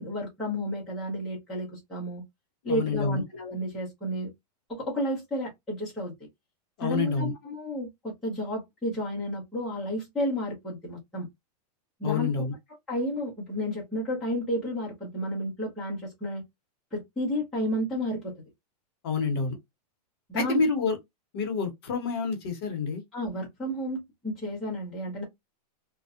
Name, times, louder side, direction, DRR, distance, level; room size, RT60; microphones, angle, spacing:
voice 1, 0.0-2.2 2.6-4.3 4.7-6.1 6.8-11.3 12.0-12.3 12.9-16.4 16.9-18.3 20.3-20.6 23.1-25.2, equal, ahead, 0.6 m, -31 dB
voice 2, 2.7-3.2 6.8-7.3 12.0-12.5 19.0-19.6 20.3-21.0 21.3-23.0, left 5 dB, 35° left, 0.8 m, -28 dB
2.5 x 2.0 x 2.3 m
supercardioid pair, 175°, 21 cm